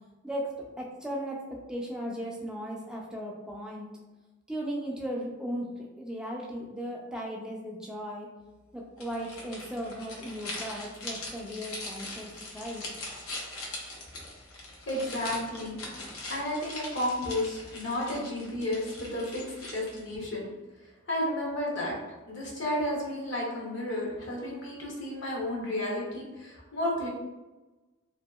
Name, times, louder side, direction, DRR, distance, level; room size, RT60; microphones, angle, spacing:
voice 1, 0.8-3.9 4.5-8.3 8.7-12.8, equal, 5° right, -2 dB, 0.3 m, -37 dB
sound 1, 9.0-20.2, left 2 dB, 90° left, 0.7 m, -41 dB
voice 2, 14.9-15.8 16.3-20.5 21.1-21.9 22.3-27.1, left 1 dB, 55° left, -4 dB, 0.8 m, -32 dB
2.7 x 2.7 x 2.3 m, 1.1 s
head